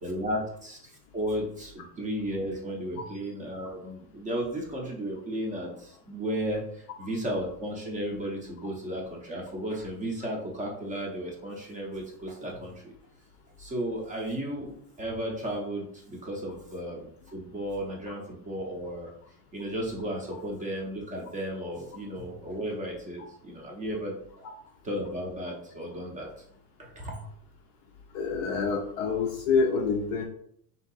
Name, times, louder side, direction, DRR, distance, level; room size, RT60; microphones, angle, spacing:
voice 1, 0.0-0.8 1.1-12.9 13.6-14.7 15.0-19.1 19.5-24.1 24.8-26.3 26.8-27.2, equal, 15° right, -1 dB, 0.5 m, -34 dB
voice 2, 28.1-30.3, left 5 dB, 40° left, 2 dB, 0.4 m, -27 dB
3.6 x 2.7 x 4.0 m, 0.67 s
supercardioid pair, 155°, 48 cm